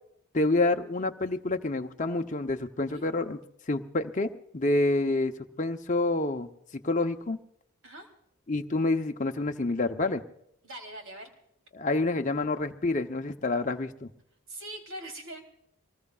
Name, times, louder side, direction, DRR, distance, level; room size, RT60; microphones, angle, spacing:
voice 1, 0.3-3.4 3.7-6.5 6.8-7.4 8.5-10.2 11.7-14.1, left 2 dB, 35° left, 5 dB, 0.8 m, -28 dB
voice 2, 10.6-11.3 14.5-15.4, right 1 dB, 60° right, 4 dB, 3.2 m, -42 dB
24.5 x 20.0 x 2.4 m, 0.74 s
head